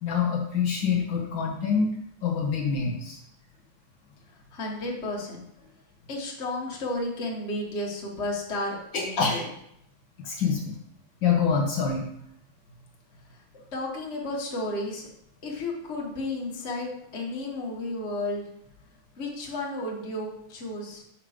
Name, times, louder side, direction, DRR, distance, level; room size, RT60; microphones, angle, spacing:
voice 1, 0.0-1.9 2.2-3.2 8.9-9.4 10.2-10.7 11.2-12.0, left 6 dB, 65° left, -1 dB, 1.8 m, -25 dB
voice 2, 4.5-5.4 6.1-9.5 13.7-15.1 15.4-18.5 19.2-21.0, left 2 dB, 35° left, -2 dB, 1.6 m, -32 dB
5.7 x 5.3 x 5.0 m, 0.75 s
omnidirectional pair, 2.3 m